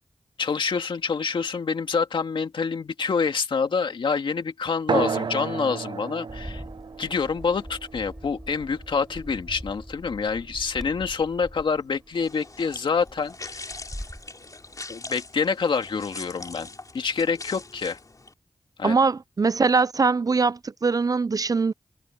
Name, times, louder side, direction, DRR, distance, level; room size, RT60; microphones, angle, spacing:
voice 1, 0.4-6.6 7.0-13.8 14.9-16.7 16.9-18.0 18.8-19.0, left 5 dB, 80° left, 2.1 m, -27 dB
sound 1, 4.9-9.9, right 5 dB, 70° right, 0.8 m, -32 dB
Bird, 6.3-14.3, equal, ahead, 4.8 m, -42 dB
sound 2, 12.1-18.3, left 3 dB, 45° left, 3.7 m, -42 dB
voice 2, 18.8-21.7, right 4 dB, 45° right, 0.5 m, -22 dB
cardioid pair, 40°, 8 cm